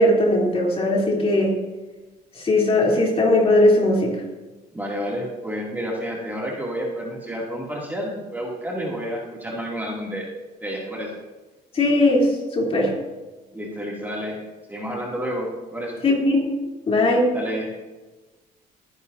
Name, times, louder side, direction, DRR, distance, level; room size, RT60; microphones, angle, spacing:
voice 1, 0.0-1.6 2.4-4.2 11.7-12.9 16.0-16.5 16.9-17.3, left 1 dB, 35° left, -2 dB, 3.3 m, -19 dB
voice 2, 4.7-10.3 10.6-11.2 13.5-14.4 14.7-16.0 17.3-17.8, equal, 10° right, -4 dB, 2.6 m, -30 dB
21.5 x 10.0 x 2.7 m, 1.2 s
cardioid pair, 110°, 17 cm